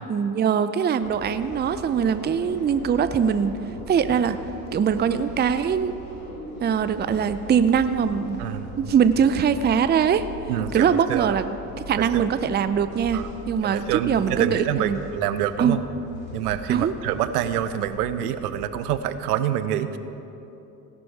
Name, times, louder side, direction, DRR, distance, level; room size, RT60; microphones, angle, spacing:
voice 1, 0.1-3.6 3.9-4.4 4.7-5.9 6.6-8.4 8.8-10.3 10.7-11.4 11.9-13.2 13.5-15.0 15.6-15.8 16.7-16.9, right 7 dB, 20° right, 12 dB, 0.6 m, -22 dB
sound 1, 1.0-19.0, left 1 dB, 85° left, 3.6 m, -40 dB
voice 2, 8.4-8.9 10.5-11.3 12.0-12.3 13.1-13.2 13.6-15.8 16.3-20.0, right 10 dB, 80° right, 12 dB, 0.8 m, -26 dB
16.5 x 11.5 x 4.7 m, 2.9 s
hypercardioid pair, 65°, 46 cm